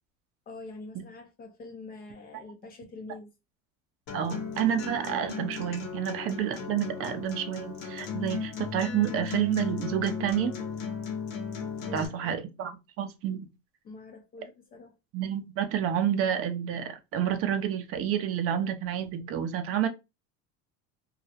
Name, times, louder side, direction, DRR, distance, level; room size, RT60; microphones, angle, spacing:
voice 1, 0.5-3.3 11.9-12.5 13.8-15.0, left 3 dB, 25° left, 0.3 m, -45 dB
Acoustic guitar, 4.1-12.1, left 5 dB, 75° left, 0.8 m, -36 dB
voice 2, 4.1-10.5 11.9-13.5 15.1-19.9, right 9 dB, 40° right, 0.4 m, -29 dB
2.3 x 2.0 x 2.7 m
supercardioid pair, 135°, 35 cm